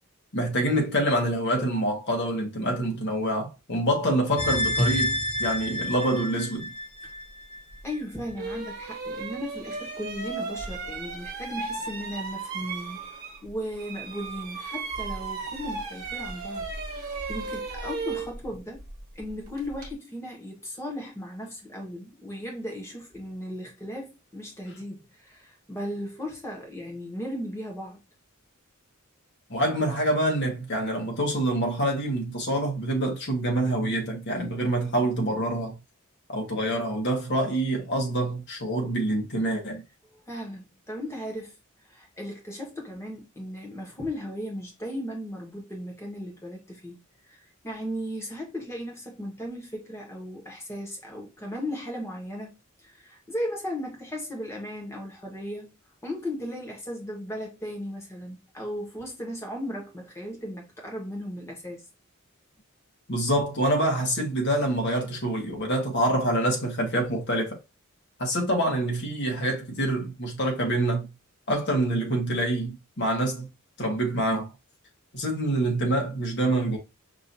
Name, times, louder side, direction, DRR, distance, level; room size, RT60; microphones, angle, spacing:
voice 1, 0.3-6.7 29.5-35.8 36.3-39.8 63.1-67.6 68.2-71.1 71.5-73.5 73.8-74.5 75.1-76.8, right 1 dB, 60° left, 1.5 m, -26 dB
sound 1, 4.4-7.6 7.9-8.0, equal, 30° left, 0.7 m, -28 dB
sound 2, 7.7-7.8 8.3-13.5 13.8-19.9, right 4 dB, 45° right, 1.3 m, -35 dB
voice 2, 7.8-13.0 13.4-16.7 16.9-18.8 19.1-28.0 40.3-41.6 41.9-47.0 47.3-55.8 56.0-61.8, equal, 15° left, 1.3 m, -36 dB
5.4 x 2.7 x 2.7 m
head